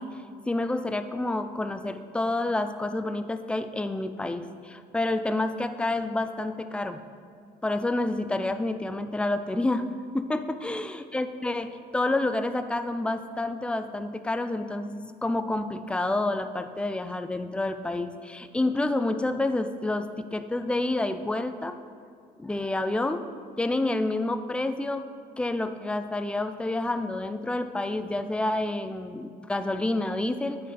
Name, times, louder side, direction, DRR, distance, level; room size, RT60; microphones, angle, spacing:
voice 1, 0.0-7.0 7.6-9.9 10.1-21.8 22.4-23.2 23.6-25.1 25.4-30.7, left 2 dB, 5° left, 9 dB, 0.3 m, -29 dB
8.7 x 5.0 x 4.1 m, 2.2 s
cardioid pair, 110°, 17 cm